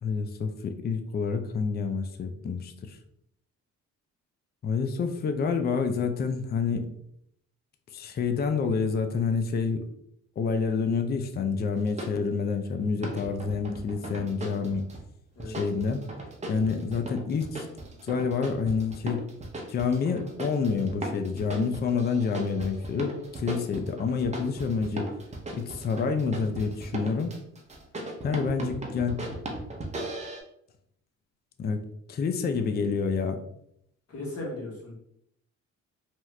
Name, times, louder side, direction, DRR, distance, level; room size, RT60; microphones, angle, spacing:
voice 1, 0.0-3.0 4.6-6.9 7.9-9.9 10.4-14.9 15.5-16.0 16.5-17.7 18.1-19.3 19.7-25.1 25.5-27.3 28.2-29.3 31.6-31.8 32.1-33.4, left 5 dB, 35° left, 7 dB, 0.4 m, -28 dB
sound 1, 11.8-12.1 13.0-15.0 15.4-30.4, right 1 dB, 25° right, 0.7 m, -38 dB
voice 2, 34.1-35.0, left 1 dB, 55° left, -5 dB, 1.4 m, -37 dB
2.9 x 2.3 x 3.2 m, 0.72 s
cardioid pair, 90°, 30 cm